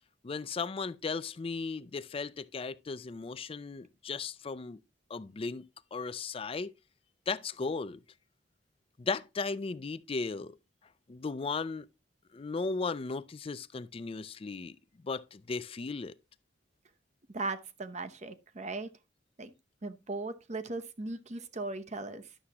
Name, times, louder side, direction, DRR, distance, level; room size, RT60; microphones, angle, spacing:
voice 1, 0.2-4.8 5.1-5.6 5.9-6.7 7.3-8.0 9.0-10.5 11.1-11.9 12.3-14.7 15.0-16.1, left 4 dB, 30° left, 0.4 m, -36 dB
voice 2, 17.3-18.9 19.4-19.5 19.8-22.3, right 3 dB, 40° right, 0.8 m, -38 dB
11.5 x 7.1 x 2.9 m
head